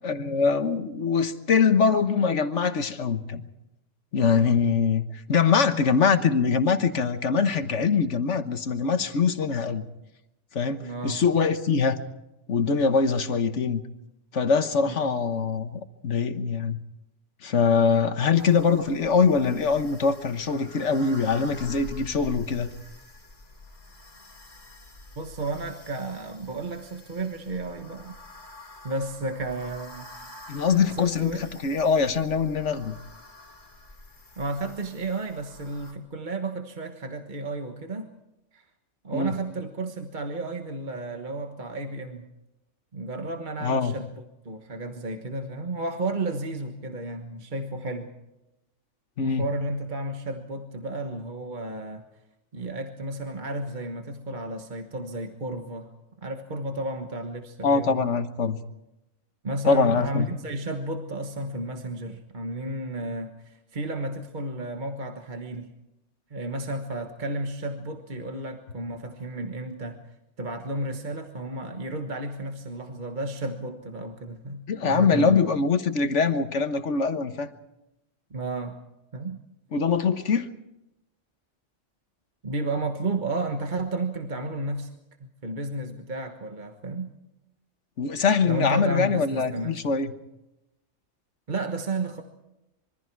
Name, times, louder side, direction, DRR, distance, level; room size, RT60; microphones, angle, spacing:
voice 1, 0.0-3.4 4.1-9.8 10.5-12.0 12.5-13.8 14.3-16.8 17.4-22.7 30.5-33.0 39.1-39.3 43.6-43.9 49.2-49.4 57.6-58.6 59.6-60.3 74.7-77.5 79.7-80.5 88.0-90.1, left 5 dB, 75° left, 9 dB, 1.5 m, -23 dB
voice 2, 10.8-11.2 14.9-15.1 25.2-28.1 28.8-30.1 30.9-31.5 34.4-38.1 38.5-38.6 39.0-42.3 42.9-44.1 44.4-48.1 49.2-52.0 52.5-55.9 56.2-58.1 59.4-65.7 66.3-70.0 70.4-75.4 78.3-78.8 79.1-79.4 82.4-84.9 85.2-87.1 88.4-89.9 91.5-92.2, right 2 dB, 40° right, 5 dB, 1.4 m, -32 dB
sound 1, 18.3-35.9, left 1 dB, 40° left, 3.1 m, -47 dB
26.0 x 23.5 x 4.7 m, 0.91 s
omnidirectional pair, 1.3 m